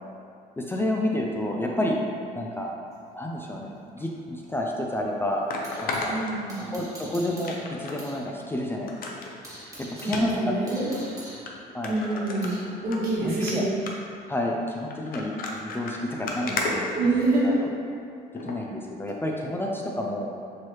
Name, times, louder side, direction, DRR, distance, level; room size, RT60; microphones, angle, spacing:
voice 1, 0.6-2.0 2.3-2.7 3.1-5.5 5.8-6.1 6.6-8.9 9.8-10.5 11.7-12.4 13.2-13.7 14.3-16.9 17.4-17.7 18.4-20.3, left 1 dB, 15° left, -1 dB, 0.3 m, -30 dB
sound 1, 2.9-6.1 6.5-8.2 8.5-8.6 9.0-12.7, right 1 dB, 20° right, 1.2 m, -45 dB
sound 2, 4.4-4.5 5.5-6.9 7.4-8.0 8.4-8.5 8.9-9.3 10.0-10.2 11.0-11.1 11.5-11.6 11.8-13.0 13.3-13.5 13.9-14.2 14.9-17.6 18.4-18.6 19.1-19.2, left 3 dB, 60° left, 0.6 m, -33 dB
voice 2, 6.1-6.6 10.0-10.9 11.8-12.5 12.8-13.6 16.9-17.6, right 2 dB, 65° right, -7 dB, 1.3 m, -26 dB
4.7 x 3.0 x 3.0 m, 2.4 s
cardioid pair, 110°, 17 cm